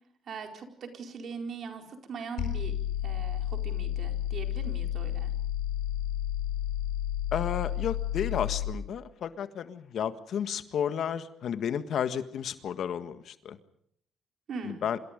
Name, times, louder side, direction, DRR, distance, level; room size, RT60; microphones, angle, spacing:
voice 1, 0.3-2.7 3.0-5.3 14.5-14.8, right 5 dB, 60° right, 4 dB, 4.5 m, -40 dB
sound 1, 2.4-8.8, left 11 dB, 90° left, 4.1 m, -31 dB
voice 2, 7.3-13.6 14.6-15.0, left 8 dB, 70° left, 10 dB, 1.6 m, -32 dB
27.5 x 26.0 x 5.2 m, 0.66 s
cardioid pair, 80°, 0 cm